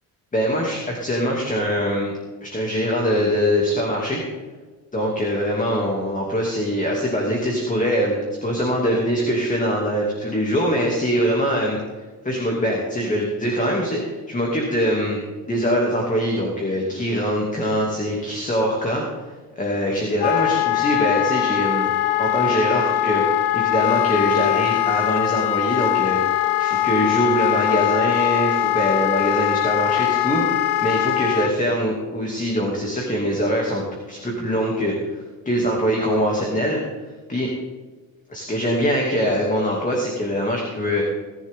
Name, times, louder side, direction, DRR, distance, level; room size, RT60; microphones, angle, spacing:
voice 1, 0.3-2.1 2.4-4.2 4.9-11.8 12.2-15.2 15.5-19.0 19.6-21.9 22.2-36.8 37.3-37.5 38.3-41.0, equal, 20° left, -1 dB, 2.6 m, -23 dB
Wind instrument woodwind instrument, 20.2-31.5, left 14 dB, 85° left, 0.7 m, -21 dB
19.5 x 11.0 x 3.8 m, 1.4 s
cardioid pair, 120°, 38 cm